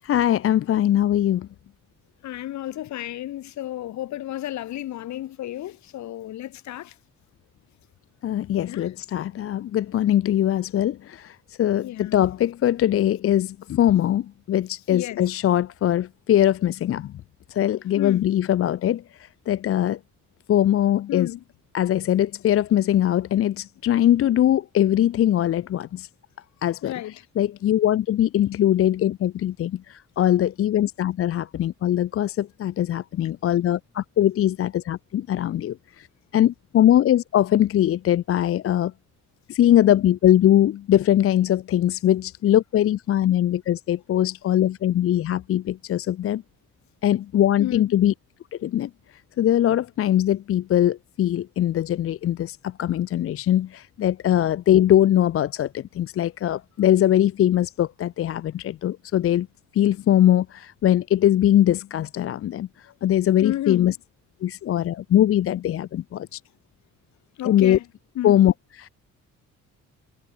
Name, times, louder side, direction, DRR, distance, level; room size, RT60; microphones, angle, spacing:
voice 1, 0.0-1.5 8.2-17.1 17.5-19.0 19.5-20.0 20.5-21.3 21.7-26.1 26.6-26.9 27.4-36.1 36.3-38.9 39.5-46.4 47.0-48.1 48.5-48.9 49.4-59.5 59.7-64.0 64.4-66.4 67.4-67.8 68.2-68.5 68.8-68.9, left 11 dB, 50° left, 0.5 m, -21 dB
voice 2, 2.2-6.9 8.6-8.9 11.7-12.3 14.9-15.2 18.0-18.3 21.1-21.4 26.8-27.2 47.6-47.9 63.4-63.9 67.4-67.8 68.1-68.4, left 13 dB, 70° left, 1.0 m, -32 dB
cardioid pair, 90°, 30 cm